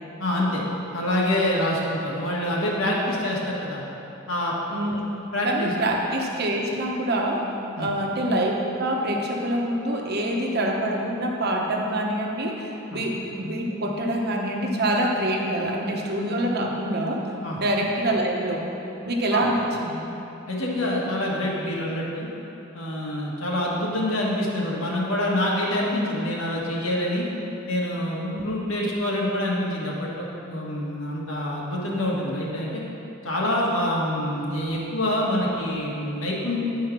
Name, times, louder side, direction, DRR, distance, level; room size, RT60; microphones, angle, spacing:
voice 1, 0.2-0.6 0.9-3.8 4.3-4.5 5.3-5.7 7.8-7.9 12.9-13.0 17.4-17.6 19.3-19.5 20.4-22.3 22.7-27.3 27.7-32.8 33.2-36.6, left 1 dB, 80° left, -4 dB, 1.7 m, -26 dB
voice 2, 4.7-5.1 5.4-7.4 7.8-17.2 17.6-18.6 19.0-20.0 28.3-28.4, right 1 dB, 50° right, 0 dB, 1.0 m, -25 dB
10.5 x 4.6 x 6.0 m, 2.9 s
head